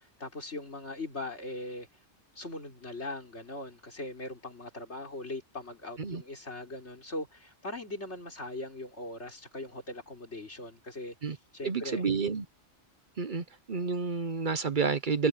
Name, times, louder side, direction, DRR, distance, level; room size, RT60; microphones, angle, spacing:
voice 1, 0.2-1.9 2.4-12.0, left 2 dB, 75° left, 5.2 m, -40 dB
voice 2, 11.6-12.4 13.2-15.3, right 5 dB, 50° right, 0.9 m, -30 dB
omnidirectional pair, 1.2 m